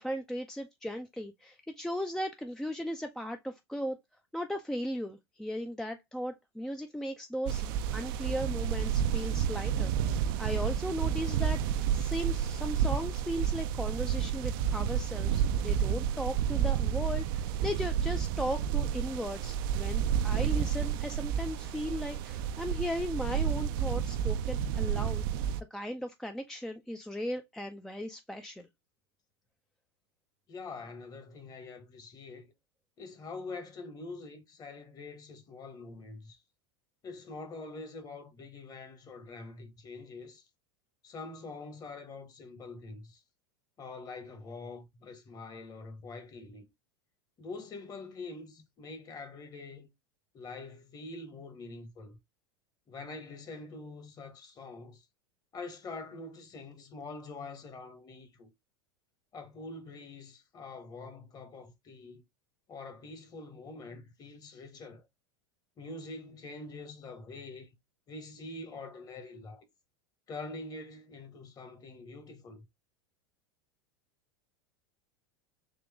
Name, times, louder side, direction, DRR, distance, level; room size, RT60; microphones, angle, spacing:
voice 1, 0.0-4.0 4.3-28.7, equal, 5° left, 0.4 m, -37 dB
sound 1, 7.5-25.6, right 9 dB, 60° right, 0.4 m, -30 dB
voice 2, 30.5-32.5 33.0-36.4 37.0-40.4 41.0-43.2 43.8-46.7 47.4-49.9 50.3-52.2 52.9-55.1 55.5-58.5 59.3-62.2 62.7-65.0 65.8-67.7 68.1-69.6 70.3-72.7, left 3 dB, 30° left, 1.1 m, -45 dB
3.8 x 2.9 x 3.4 m
hypercardioid pair, 90°, 13 cm